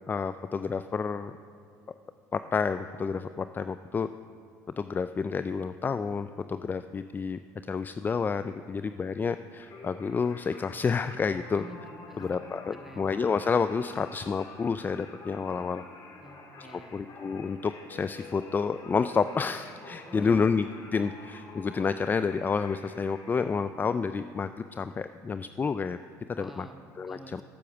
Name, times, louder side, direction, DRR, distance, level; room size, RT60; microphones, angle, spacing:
voice 1, 0.1-1.3 2.3-4.1 4.8-7.4 7.7-11.6 12.2-15.8 16.6-20.7 20.9-26.0 26.4-26.7 27.0-27.4, left 5 dB, 25° left, 12 dB, 0.3 m, -29 dB
Singing, 9.6-23.4, left 3 dB, 50° left, 2.4 m, -48 dB
voice 2, 11.5-13.1 16.2-17.1 20.1-20.6 26.3-27.4, equal, 5° right, 3 dB, 1.6 m, -47 dB
11.0 x 8.5 x 7.0 m, 2.3 s
supercardioid pair, 80°, 8 cm